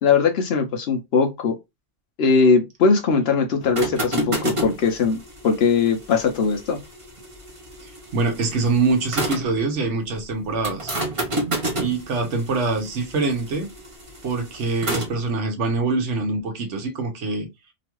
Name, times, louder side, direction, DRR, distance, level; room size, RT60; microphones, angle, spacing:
voice 1, 0.0-1.6 2.2-5.2 5.4-6.8, left 5 dB, 65° left, 0.8 m, -20 dB
sound 1, 3.6-9.6 10.6-15.2, right 1 dB, 30° right, 0.7 m, -30 dB
voice 2, 7.8-10.9 11.8-13.7 14.2-17.5, right 3 dB, 70° right, 1.1 m, -24 dB
2.9 x 2.3 x 2.9 m
omnidirectional pair, 1.2 m